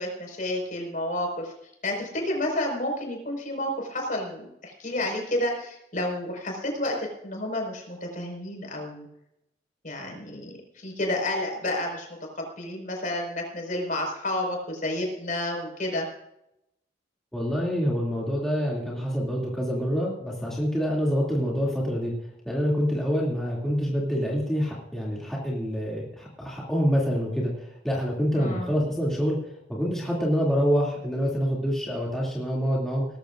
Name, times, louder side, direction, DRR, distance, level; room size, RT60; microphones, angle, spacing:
voice 1, 0.0-1.5 1.8-9.1 9.8-12.1 12.3-16.0 28.3-28.7, left 1 dB, 45° left, 1 dB, 5.1 m, -30 dB
voice 2, 17.3-22.1 22.4-29.4 29.7-33.1, equal, 5° left, -5 dB, 2.6 m, -26 dB
19.0 x 14.5 x 2.6 m, 0.82 s
head